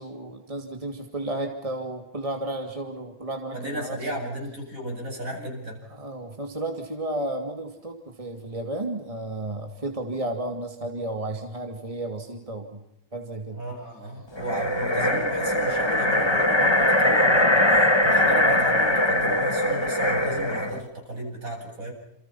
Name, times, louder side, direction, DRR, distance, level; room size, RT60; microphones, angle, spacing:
voice 1, 0.0-4.0 5.9-12.8 13.1-13.6, right 1 dB, 20° right, 4 dB, 2.7 m, -33 dB
voice 2, 3.5-5.8 13.5-21.9, right 1 dB, 60° right, 1 dB, 8.6 m, -33 dB
sound 1, 14.4-20.8, left 1 dB, 15° left, 1.8 m, -21 dB
29.0 x 28.5 x 5.8 m, 0.83 s
omnidirectional pair, 1.6 m